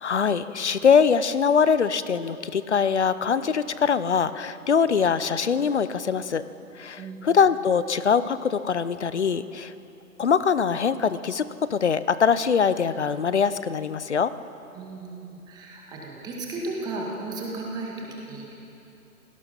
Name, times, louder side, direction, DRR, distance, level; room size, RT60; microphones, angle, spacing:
voice 1, 0.0-6.4 6.8-9.7 10.2-14.3, left 6 dB, 45° left, 15 dB, 0.8 m, -23 dB
voice 2, 6.9-7.3 14.7-18.5, right 2 dB, 10° right, -2 dB, 1.9 m, -35 dB
27.0 x 17.5 x 5.7 m, 2.9 s
figure-of-eight pair, 145°, 46 cm